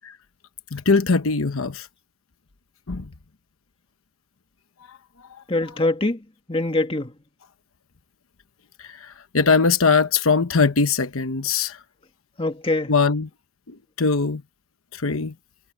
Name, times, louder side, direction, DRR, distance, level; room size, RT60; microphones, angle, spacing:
voice 1, 0.7-1.9 2.9-3.1 8.9-11.8 12.9-13.3 14.0-14.4 14.9-15.3, left 4 dB, 85° left, 1.0 m, -21 dB
voice 2, 5.5-7.2 12.4-12.9, left 2 dB, 25° left, 1.9 m, -24 dB
head